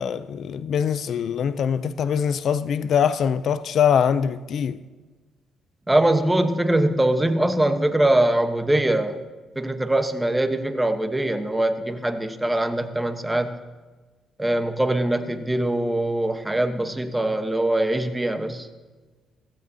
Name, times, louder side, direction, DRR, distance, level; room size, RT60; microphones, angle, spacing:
voice 1, 0.0-4.8, left 8 dB, 65° left, 0.4 m, -23 dB
voice 2, 5.9-9.2 9.6-13.5 14.4-18.7, right 1 dB, 10° right, 1.1 m, -22 dB
16.5 x 15.5 x 2.8 m
cardioid pair, 90°, 0 cm